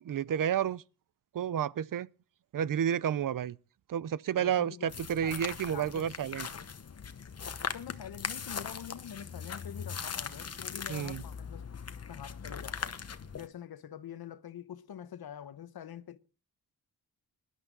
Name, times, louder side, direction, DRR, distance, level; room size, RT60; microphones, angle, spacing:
voice 1, 0.0-0.8 1.3-2.1 2.5-3.6 3.9-6.5 10.9-11.2, right 9 dB, 60° right, 0.6 m, -31 dB
voice 2, 4.4-4.9 5.2-6.1 6.5-6.7 7.7-11.6 12.1-13.0 13.4-16.2, left 9 dB, 70° left, 1.0 m, -45 dB
sound 1, 4.9-13.5, left 6 dB, 40° left, 1.0 m, -40 dB
19.5 x 11.0 x 3.8 m
cardioid pair, 90°, 38 cm